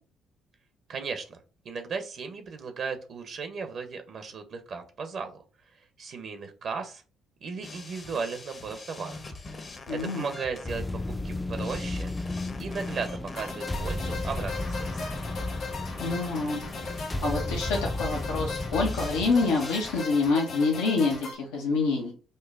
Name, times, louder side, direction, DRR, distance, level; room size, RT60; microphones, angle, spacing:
voice 1, 0.9-1.4 1.6-5.4 5.7-7.0 7.4-9.2 9.9-10.8 11.2-12.1 12.6-15.0, right 5 dB, 60° right, 7 dB, 0.6 m, -36 dB
sound 1, 7.6-20.0, left 3 dB, 40° left, 0.7 m, -44 dB
voice 2, 9.9-10.2 16.0-16.6 17.2-22.1, left 3 dB, 85° left, -1 dB, 0.6 m, -26 dB
sound 2, 10.6-19.3, left 2 dB, 15° left, 0.3 m, -33 dB
sound 3, 13.4-21.4, left 4 dB, 65° left, 1.1 m, -38 dB
5.2 x 2.1 x 2.4 m, 0.36 s
hypercardioid pair, 55°, 0 cm